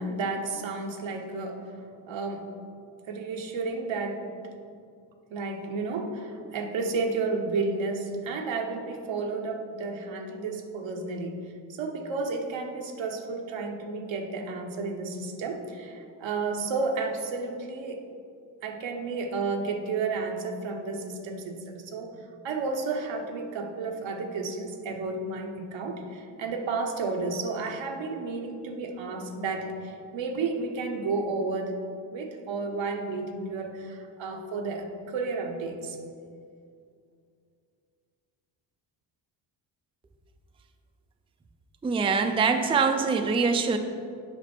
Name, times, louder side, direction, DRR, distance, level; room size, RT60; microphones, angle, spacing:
voice 1, 0.0-1.7 2.1-2.5 3.1-4.2 4.7-4.8 5.3-18.0 18.6-22.1 22.4-31.7 32.1-36.0, right 3 dB, 80° right, 3 dB, 1.0 m, -32 dB
voice 2, 41.8-43.8, right 5 dB, 15° right, 6 dB, 0.4 m, -24 dB
8.0 x 5.2 x 4.3 m, 2.4 s
cardioid pair, 90°, 45 cm